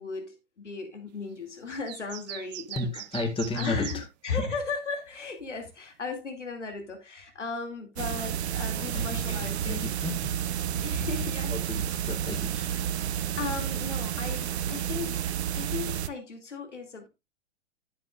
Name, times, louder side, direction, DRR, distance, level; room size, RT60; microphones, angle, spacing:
voice 1, 0.0-3.0 3.5-9.8 10.8-12.0 13.4-15.3 15.5-17.1, left 4 dB, 90° left, 2.6 m, -36 dB
sound 1, 1.7-4.0, right 16 dB, 40° right, 0.4 m, -40 dB
voice 2, 2.8-4.0 8.8-10.3 11.5-12.7, left 3 dB, 15° left, 2.0 m, -34 dB
sound 2, 8.0-16.1, right 9 dB, 65° right, 0.8 m, -30 dB
11.0 x 9.1 x 2.5 m
hypercardioid pair, 115°, 35 cm